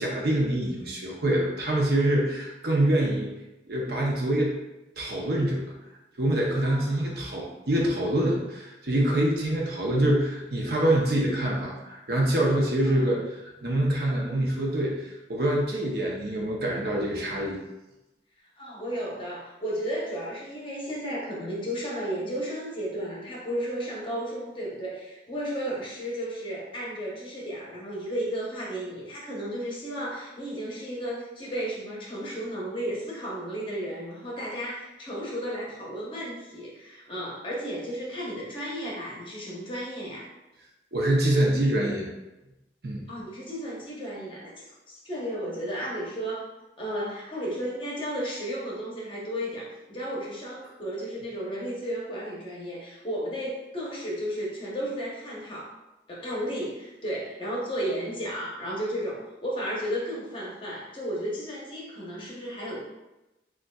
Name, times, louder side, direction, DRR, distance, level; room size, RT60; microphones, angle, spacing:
voice 1, 0.0-3.3 3.7-4.6 5.0-5.6 6.2-17.6 40.9-42.1 42.8-43.0, right 1 dB, 60° right, -2 dB, 0.8 m, -25 dB
voice 2, 6.6-7.2 12.8-13.1 18.6-40.3 43.1-46.5 46.8-55.7 56.1-62.8, equal, 30° left, -4 dB, 0.9 m, -33 dB
6.4 x 2.4 x 2.3 m, 0.99 s
head